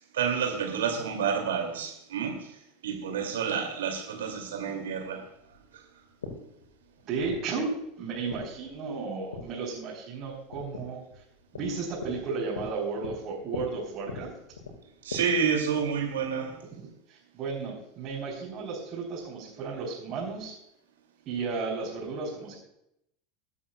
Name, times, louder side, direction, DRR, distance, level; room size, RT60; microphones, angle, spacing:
voice 1, 0.1-2.6 2.8-5.3 5.7-5.8 15.0-16.6, right 6 dB, 70° right, 2.6 m, -29 dB
sound 1, 4.2-15.2, left 4 dB, 75° left, 4.2 m, -43 dB
voice 2, 7.0-7.7 8.0-11.2 11.5-14.3 17.1-20.5 21.3-22.5, right 4 dB, 45° right, 4.0 m, -34 dB
24.0 x 8.5 x 2.4 m
figure-of-eight pair, 80°, 0 cm